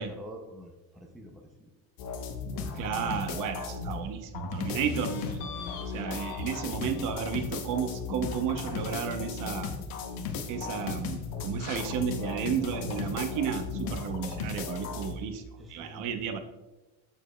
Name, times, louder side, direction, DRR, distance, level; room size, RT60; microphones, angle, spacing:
voice 1, 0.0-1.7 10.7-11.0 15.6-16.1, equal, ahead, 1 dB, 0.4 m, -46 dB
sound 1, 2.0-4.1 4.3-15.1, left 4 dB, 65° left, 0.9 m, -36 dB
voice 2, 2.7-9.7 10.5-16.4, right 7 dB, 55° right, 8 dB, 0.7 m, -33 dB
7.2 x 6.4 x 2.2 m, 1.1 s
cardioid pair, 155°, 37 cm